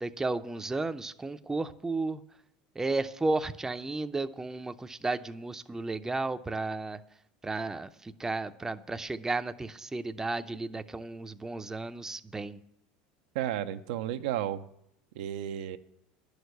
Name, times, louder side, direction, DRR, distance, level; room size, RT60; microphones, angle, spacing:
voice 1, 0.0-2.2 2.8-7.0 7.4-12.6, right 3 dB, 10° right, 9 dB, 0.6 m, -33 dB
voice 2, 13.3-14.7 15.2-15.8, right 11 dB, 80° right, 8 dB, 0.7 m, -32 dB
11.0 x 6.6 x 8.1 m, 0.77 s
supercardioid pair, 95°, 4 cm